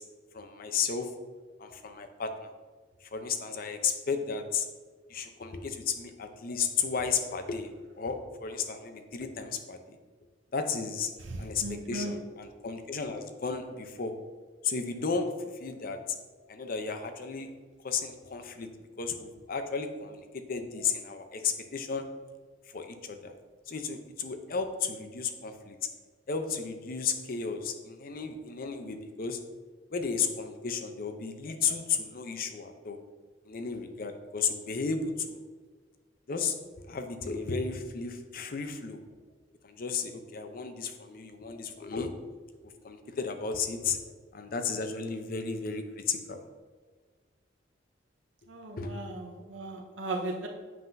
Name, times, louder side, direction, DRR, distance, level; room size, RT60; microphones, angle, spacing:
voice 1, 0.3-1.1 1.6-2.5 3.1-4.7 5.1-7.7 8.0-9.8 10.5-11.1 11.4-14.1 14.6-15.3 15.6-16.2 16.5-17.5 17.8-18.7 19.0-22.0 22.7-23.3 23.7-25.8 26.3-29.4 29.9-33.0 33.5-35.4 36.3-36.5 36.9-39.0 39.6-42.1 42.8-44.0 44.3-46.4 48.8-49.0, left 5 dB, 50° left, 7 dB, 0.6 m, -33 dB
voice 2, 11.2-12.1 48.5-50.5, right 2 dB, 85° right, 2 dB, 0.6 m, -37 dB
7.6 x 5.7 x 2.6 m, 1.4 s
head